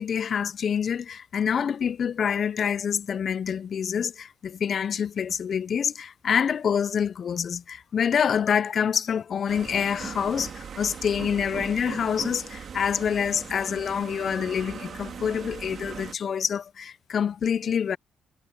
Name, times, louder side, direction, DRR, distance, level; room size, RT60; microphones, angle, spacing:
voice 1, 0.0-18.0, left 7 dB, 55° left, 0.4 m, -26 dB
sound 1, 9.5-16.2, right 7 dB, 55° right, 2.4 m, -39 dB
cardioid pair, 90°, 0 cm